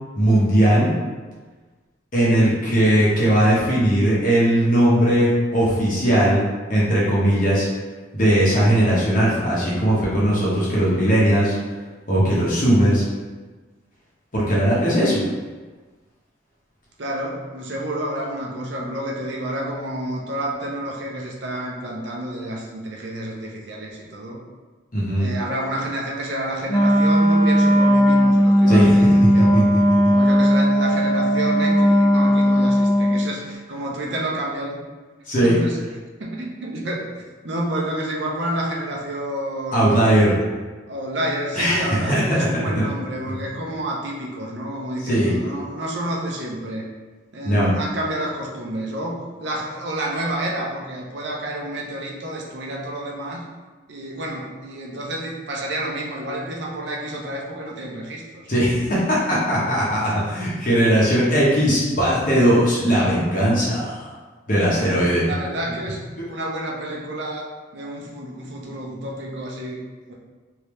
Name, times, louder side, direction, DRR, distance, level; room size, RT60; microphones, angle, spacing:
voice 1, 0.1-0.9 2.1-6.4 6.7-7.7 8.1-11.6 12.1-13.0 14.3-15.2 24.9-25.3 28.7-28.9 29.4-29.6 35.3-35.6 39.7-40.3 41.5-42.5 42.7-42.8 45.0-45.3 47.4-47.7 58.5-64.1 64.5-65.3, right 1 dB, 45° left, -7 dB, 1.0 m, -18 dB
voice 2, 17.0-24.4 25.2-29.6 30.1-34.8 35.4-35.9 36.2-37.1 37.4-40.2 40.9-46.9 47.3-53.4 53.9-58.5 64.5-66.0 66.3-67.5 67.7-70.1, right 1 dB, 70° right, -2 dB, 0.7 m, -29 dB
Wind instrument woodwind instrument, 26.7-33.3, equal, 20° left, 0.4 m, -16 dB
3.4 x 2.8 x 3.1 m, 1.3 s
head